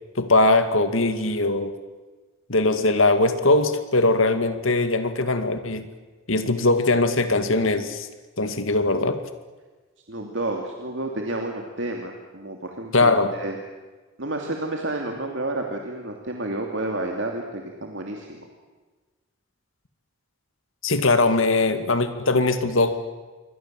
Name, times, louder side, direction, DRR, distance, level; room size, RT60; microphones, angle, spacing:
voice 1, 0.2-1.7 2.5-5.9 6.3-8.1 8.4-9.2 12.9-13.3 20.8-22.9, left 2 dB, 80° left, 9 dB, 2.2 m, -21 dB
voice 2, 10.1-13.6 14.2-18.5, right 2 dB, 65° right, 2 dB, 2.7 m, -30 dB
27.5 x 24.0 x 7.6 m, 1.3 s
head